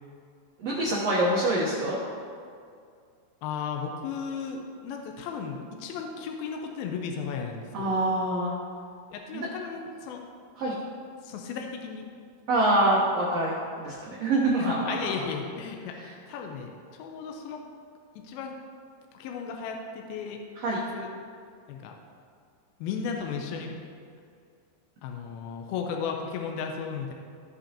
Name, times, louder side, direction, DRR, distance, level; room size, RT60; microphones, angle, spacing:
voice 1, 0.6-2.0 7.7-8.5 9.3-9.5 10.6-10.8 12.5-15.1 16.0-16.1 20.6-20.8, right 1 dB, 75° right, -5 dB, 1.5 m, -25 dB
voice 2, 3.4-7.9 9.1-10.2 11.2-12.1 14.6-16.7 17.0-17.6 18.2-18.6 19.1-20.4 20.9-21.1 21.7-21.9 22.8-23.7 25.0-27.1, left 6 dB, 80° left, 2 dB, 2.5 m, -35 dB
15.5 x 5.4 x 2.9 m, 2.3 s
omnidirectional pair, 4.4 m